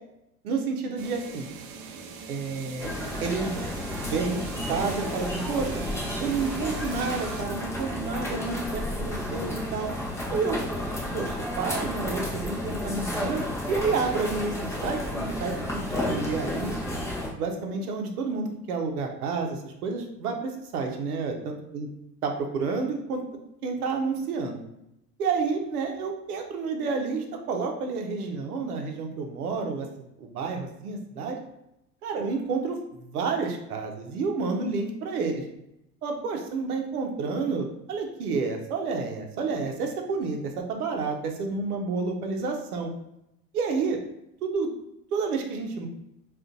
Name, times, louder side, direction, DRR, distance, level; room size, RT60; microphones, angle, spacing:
voice 1, 0.4-1.5 2.3-2.9 3.2-3.6 4.0-5.8 6.2-9.9 10.3-10.6 11.1-16.8 17.4-21.9 22.2-23.2 23.6-24.6 25.2-29.9 30.2-31.4 32.0-35.4 36.0-42.9 43.5-44.0 44.4-44.7 45.1-45.9, right 4 dB, 65° right, 3 dB, 0.8 m, -30 dB
sound 1, 1.0-7.4, right 5 dB, 30° right, 0.4 m, -41 dB
sound 2, 2.8-17.3, left 1 dB, 5° left, 0.7 m, -32 dB
3.8 x 2.5 x 3.6 m, 0.84 s
figure-of-eight pair, 75°, 49 cm